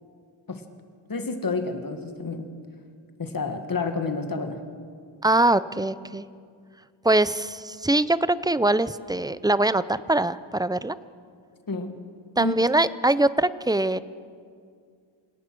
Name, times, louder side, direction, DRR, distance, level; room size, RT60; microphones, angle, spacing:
voice 1, 1.1-2.5 3.2-4.6 11.7-12.0 12.4-12.5, left 3 dB, 45° left, 6 dB, 1.9 m, -29 dB
voice 2, 5.2-6.2 7.0-11.0 12.4-14.0, right 2 dB, 10° right, 15 dB, 0.4 m, -22 dB
27.5 x 17.5 x 6.2 m, 2.2 s
wide cardioid pair, 140°, 47 cm